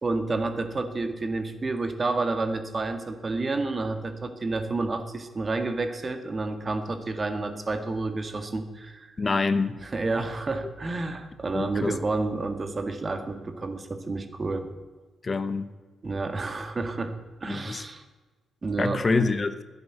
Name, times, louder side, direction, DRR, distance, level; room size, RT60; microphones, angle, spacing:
voice 1, 0.0-9.2 9.8-14.7 16.0-18.0 18.6-19.1, right 3 dB, 40° right, 8 dB, 1.8 m, -30 dB
voice 2, 9.2-9.8 11.5-11.9 15.2-15.7 17.5-17.8 18.8-19.6, left 4 dB, 40° left, 11 dB, 0.9 m, -26 dB
11.5 x 10.5 x 8.1 m, 1.4 s
supercardioid pair, 55°, 0 cm